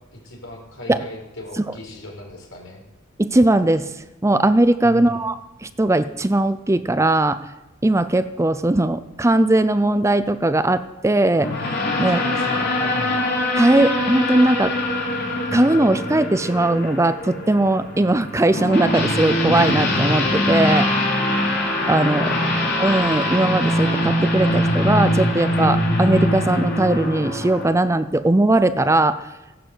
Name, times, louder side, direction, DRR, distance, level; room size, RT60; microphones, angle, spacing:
voice 1, 0.1-2.8 4.8-5.2 12.1-13.2 22.2-22.6, left 1 dB, 75° left, 1 dB, 4.9 m, -36 dB
voice 2, 3.2-3.9 4.2-7.4 7.8-12.2 13.6-14.8 15.5-20.9 21.9-22.3 22.8-29.3, right 2 dB, 15° right, 12 dB, 0.5 m, -19 dB
sound 1, 11.3-27.7, left 1 dB, 55° left, 4.0 m, -22 dB
16.0 x 11.0 x 8.0 m, 1.0 s
head